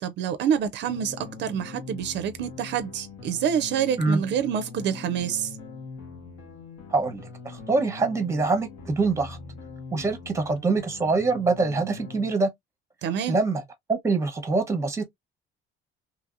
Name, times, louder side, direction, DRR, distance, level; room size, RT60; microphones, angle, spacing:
voice 1, 0.0-5.6 13.0-13.4, right 8 dB, 60° right, 0.4 m, -27 dB
sound 1, 0.8-12.3, left 4 dB, 90° left, 1.3 m, -42 dB
voice 2, 6.9-9.4 9.9-12.5 13.3-13.6 13.9-15.0, right 3 dB, 15° right, 0.8 m, -24 dB
2.8 x 2.6 x 2.4 m
cardioid pair, 140°, 20 cm